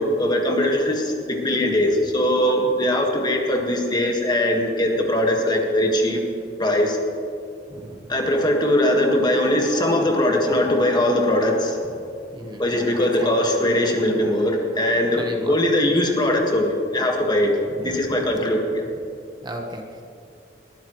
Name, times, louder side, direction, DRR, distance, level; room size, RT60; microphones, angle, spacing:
voice 1, 0.0-6.2 6.6-7.0 8.1-11.9 12.6-17.5 17.8-18.8, left 1 dB, 25° left, 1 dB, 1.6 m, -21 dB
voice 2, 7.7-8.1 10.5-10.6 12.3-12.6 12.9-13.3 15.1-15.6 17.7-18.4 19.4-20.0, right 1 dB, 25° right, 2 dB, 1.2 m, -35 dB
19.5 x 12.5 x 3.1 m, 2.5 s
head